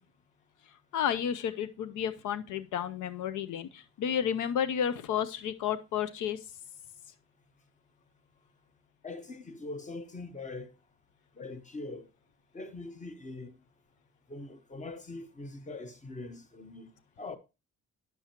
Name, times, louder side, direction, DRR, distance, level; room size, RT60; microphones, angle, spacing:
voice 1, 0.9-6.4, left 9 dB, 80° left, 0.6 m, -31 dB
voice 2, 9.0-10.7 11.4-12.1 12.5-13.6 14.3-16.9 17.2-17.4, left 2 dB, 25° left, 1.1 m, -42 dB
9.4 x 7.1 x 2.9 m
cardioid pair, 90°, 30 cm